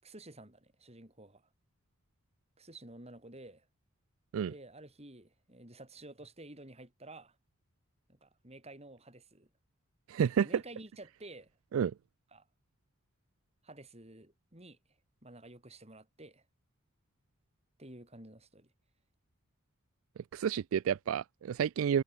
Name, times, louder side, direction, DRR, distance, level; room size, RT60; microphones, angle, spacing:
voice 1, 0.0-1.4 2.6-3.6 4.5-7.4 8.1-9.5 10.4-11.5 12.3-12.5 13.6-14.8 15.2-16.4 17.8-18.7, right 2 dB, 30° right, 6.2 m, -51 dB
voice 2, 10.1-10.5 11.7-11.9 20.3-22.0, right 8 dB, 80° right, 0.3 m, -30 dB
head